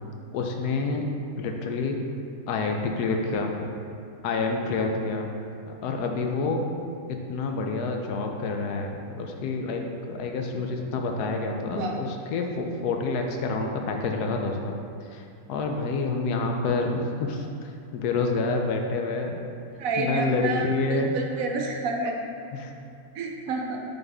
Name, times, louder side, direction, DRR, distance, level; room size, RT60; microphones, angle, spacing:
voice 1, 0.3-1.0 1.4-2.0 2.5-3.5 4.2-5.3 5.7-6.6 7.1-14.8 15.1-19.4 20.0-21.2 22.5-22.7, left 3 dB, 80° left, 3 dB, 1.2 m, -28 dB
voice 2, 19.8-20.6 20.9-22.2 23.1-23.8, right 3 dB, 70° right, 1 dB, 0.9 m, -29 dB
7.0 x 4.0 x 3.5 m, 2.4 s
omnidirectional pair, 1.7 m